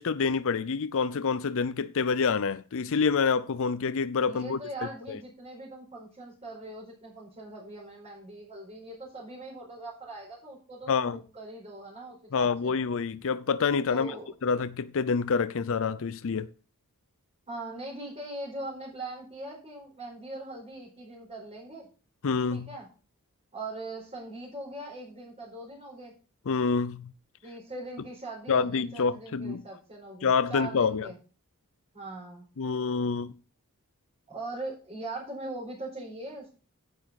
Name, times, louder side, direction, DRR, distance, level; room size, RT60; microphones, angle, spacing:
voice 1, 0.0-4.6 5.1-5.2 10.9-11.2 12.3-14.1 14.4-16.5 22.2-22.7 26.5-27.1 28.5-29.6 30.2-31.1 32.6-33.3, left 5 dB, 65° left, 0.5 m, -27 dB
voice 2, 4.3-12.7 13.9-14.3 17.5-21.9 22.5-22.9 23.5-26.1 27.4-31.2 31.9-32.4 34.3-36.5, right 2 dB, 30° right, 4.7 m, -41 dB
10.5 x 8.5 x 4.1 m
head